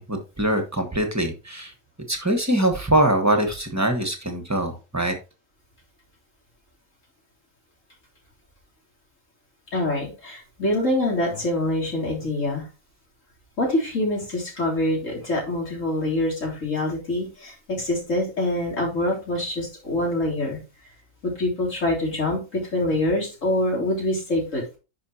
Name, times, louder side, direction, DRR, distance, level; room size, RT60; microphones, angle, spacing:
voice 1, 0.0-1.7 2.1-5.1, right 1 dB, 15° right, 6 dB, 1.3 m, -23 dB
voice 2, 9.7-12.6 13.6-20.6 21.2-24.6, left 1 dB, 70° left, -3 dB, 3.9 m, -25 dB
10.5 x 5.6 x 2.9 m, 0.30 s
omnidirectional pair, 1.4 m